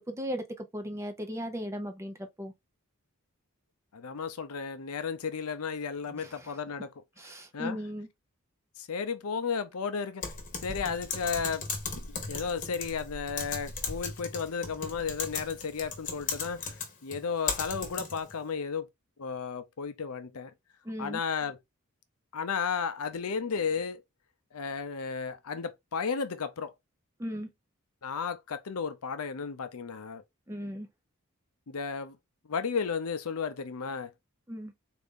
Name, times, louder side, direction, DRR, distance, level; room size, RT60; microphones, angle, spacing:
voice 1, 0.0-2.5 6.2-6.3 7.2-8.1 20.9-21.2 27.2-27.5 30.5-30.9 34.5-34.7, equal, 10° right, 0.6 m, -37 dB
voice 2, 3.9-6.9 7.5-7.8 8.8-10.2 10.6-11.6 11.9-16.8 17.0-18.9 19.2-20.5 21.0-21.6 22.3-24.0 24.5-26.7 28.0-30.2 31.7-32.2 32.5-34.1, left 5 dB, 80° left, 0.6 m, -33 dB
Typing, 10.2-18.3, left 5 dB, 35° left, 1.0 m, -37 dB
4.0 x 2.6 x 3.6 m
head